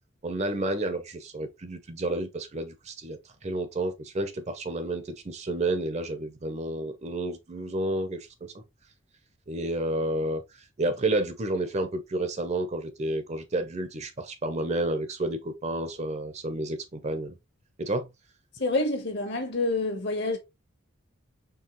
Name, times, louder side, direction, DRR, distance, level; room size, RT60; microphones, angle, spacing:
voice 1, 0.2-8.6 9.5-10.4 10.8-17.4 17.8-18.1, right 2 dB, 35° right, 0.7 m, -30 dB
voice 2, 18.6-20.4, left 2 dB, 60° left, 1.3 m, -27 dB
4.6 x 3.3 x 3.0 m
head